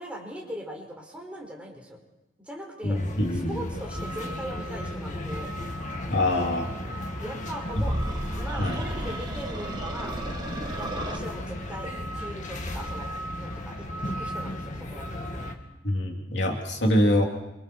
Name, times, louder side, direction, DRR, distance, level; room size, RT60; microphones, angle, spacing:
voice 1, 0.0-2.0 2.4-3.0 3.3-5.5 7.2-7.9 8.3-10.2 10.7-11.9 12.1-13.1 13.4-15.5, equal, 5° right, -1 dB, 4.7 m, -40 dB
voice 2, 2.8-3.6 6.1-6.7 7.8-7.9 8.6-8.8 15.8-17.2, left 1 dB, 65° left, 2 dB, 3.2 m, -24 dB
sound 1, 2.9-15.5, left 1 dB, 40° left, 2.2 m, -35 dB
sound 2, 7.7-11.2, right 1 dB, 25° right, 2.1 m, -33 dB
28.5 x 25.0 x 4.6 m, 0.95 s
head